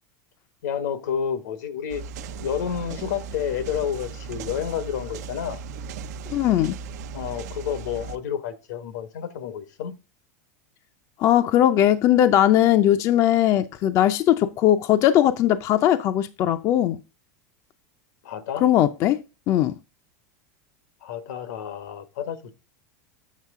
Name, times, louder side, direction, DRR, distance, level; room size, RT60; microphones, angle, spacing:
voice 1, 0.6-2.0 2.4-5.6 7.1-9.9 18.2-18.6 21.0-22.6, left 8 dB, 80° left, 1.2 m, -30 dB
sound 1, 1.9-8.2, right 5 dB, 75° right, 0.6 m, -37 dB
voice 2, 6.3-6.7 11.2-17.0 18.6-19.2 19.5-19.7, left 12 dB, 35° left, 0.5 m, -19 dB
7.4 x 6.5 x 3.6 m
supercardioid pair, 150°, 9 cm